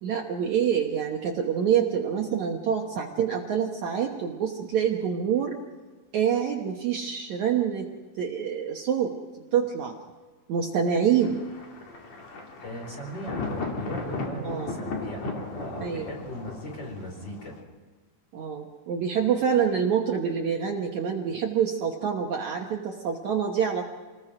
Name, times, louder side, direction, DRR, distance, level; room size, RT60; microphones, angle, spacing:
voice 1, 0.0-5.5 6.1-7.9 8.2-9.1 9.5-9.9 10.5-11.4 14.3-14.7 15.8-16.1 18.3-23.8, right 8 dB, 60° right, 1 dB, 2.2 m, -26 dB
Thunder, 11.2-17.6, left 3 dB, 45° left, 3.5 m, -36 dB
voice 2, 12.6-17.6, equal, 30° left, 0 dB, 4.7 m, -38 dB
28.0 x 20.0 x 5.0 m, 1.4 s
omnidirectional pair, 4.4 m